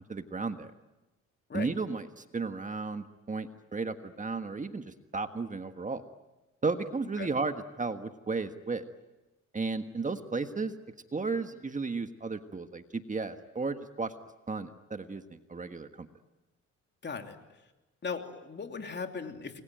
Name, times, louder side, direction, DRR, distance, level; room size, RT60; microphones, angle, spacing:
voice 1, 0.1-0.7 1.5-6.0 6.6-8.8 9.5-10.7 11.1-14.1 14.5-16.1, right 4 dB, 25° right, 8 dB, 1.5 m, -34 dB
voice 2, 17.0-17.4 18.0-19.6, left 5 dB, 35° left, 5 dB, 3.1 m, -38 dB
29.0 x 22.0 x 9.1 m, 1.1 s
cardioid pair, 90°, 30 cm